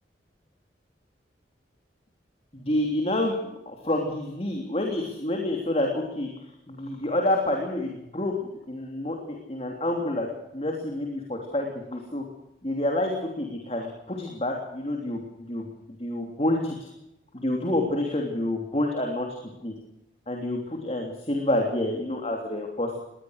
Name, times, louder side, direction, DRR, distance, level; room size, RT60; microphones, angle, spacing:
voice 1, 2.5-3.4 3.6-6.3 6.7-8.3 8.7-10.3 10.5-12.2 12.6-15.7 16.0-16.9 17.3-19.3 19.6-19.7 20.3-23.0, left 1 dB, 35° left, 2 dB, 3.1 m, -28 dB
21.0 x 19.5 x 6.5 m, 0.88 s
head